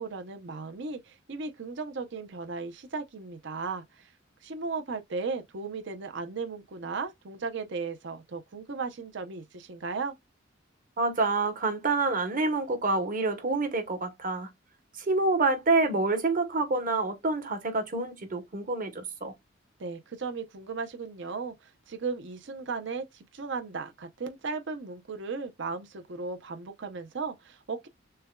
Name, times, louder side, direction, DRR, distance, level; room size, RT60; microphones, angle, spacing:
voice 1, 0.0-4.1 4.4-10.1 19.8-21.5 21.9-27.9, right 4 dB, 65° right, 0.7 m, -36 dB
voice 2, 11.0-14.5 15.0-19.3, right 3 dB, 45° right, 1.1 m, -27 dB
6.6 x 2.2 x 2.3 m
head